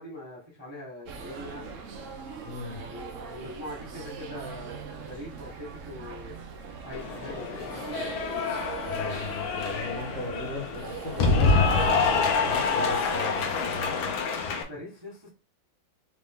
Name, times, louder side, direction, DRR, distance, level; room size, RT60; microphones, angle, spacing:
voice 1, 0.0-1.8 2.7-6.3 6.8-8.2 14.6-15.3, left 1 dB, 15° right, 1.0 m, -42 dB
sound 1, 1.1-13.9, right 5 dB, 75° right, 0.7 m, -41 dB
voice 2, 2.4-2.8 8.9-14.1, left 2 dB, 25° left, 1.2 m, -38 dB
Cheering / Applause, 6.9-14.6, left 4 dB, 75° left, 1.6 m, -26 dB
4.9 x 2.7 x 3.5 m
omnidirectional pair, 2.2 m